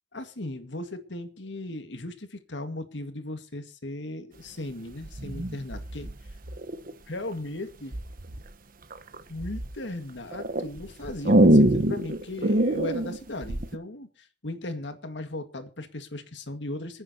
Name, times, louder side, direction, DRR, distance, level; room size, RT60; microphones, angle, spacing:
voice 1, 0.1-6.1 7.1-8.0 9.3-17.0, left 1 dB, 65° left, 8 dB, 1.9 m, -37 dB
sound 1, 5.0-6.9 7.9-8.4 8.9-9.7 10.3-13.8, right 1 dB, 50° right, 1.1 m, -24 dB
26.0 x 10.0 x 2.9 m, 0.35 s
head